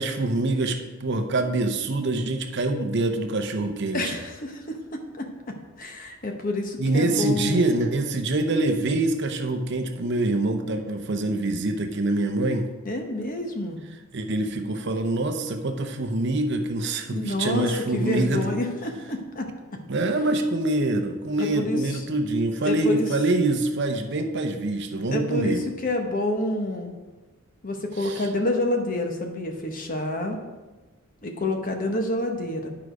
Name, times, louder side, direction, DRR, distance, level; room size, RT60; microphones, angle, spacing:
voice 1, 0.0-4.2 6.8-12.7 14.1-18.6 19.9-25.6 28.0-28.2, right 2 dB, 50° right, 6 dB, 0.7 m, -25 dB
voice 2, 3.9-5.3 5.8-7.7 12.8-13.8 17.1-19.8 21.4-21.8 22.6-23.1 25.1-26.9 27.6-30.4 31.2-32.7, left 1 dB, 40° left, 4 dB, 0.9 m, -28 dB
10.5 x 4.8 x 5.0 m, 1.2 s
head